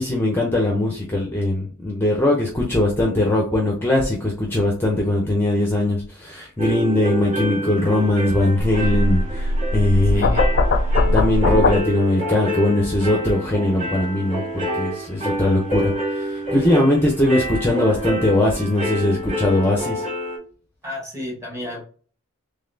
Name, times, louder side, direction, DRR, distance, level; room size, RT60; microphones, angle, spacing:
voice 1, 0.0-10.8 11.0-20.0, left 1 dB, 10° left, -1 dB, 0.6 m, -20 dB
sound 1, 6.6-20.4, equal, 40° right, 1.9 m, -28 dB
sound 2, 8.6-11.8, left 2 dB, 50° left, 0.4 m, -20 dB
voice 2, 10.1-10.4 20.8-21.8, left 1 dB, 15° right, -2 dB, 1.4 m, -32 dB
3.9 x 3.2 x 2.6 m, 0.42 s
head